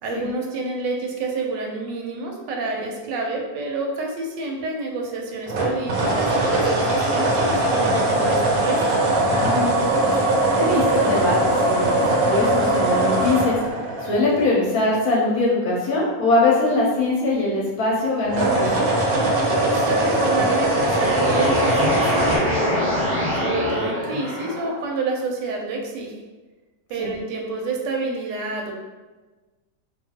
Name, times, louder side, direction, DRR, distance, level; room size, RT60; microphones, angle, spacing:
voice 1, 0.0-8.8 19.6-22.8 23.4-26.2 26.9-28.7, right 3 dB, 85° right, 1 dB, 1.3 m, -28 dB
sound 1, 5.5-14.7 18.2-22.4, right 1 dB, 70° right, 0.9 m, -21 dB
voice 2, 10.5-13.6 14.0-18.8 27.0-27.1, left 2 dB, 65° left, -4 dB, 1.0 m, -22 dB
sound 2, 20.0-24.9, left 1 dB, 10° left, 1.1 m, -25 dB
2.9 x 2.4 x 2.7 m, 1.3 s
omnidirectional pair, 1.9 m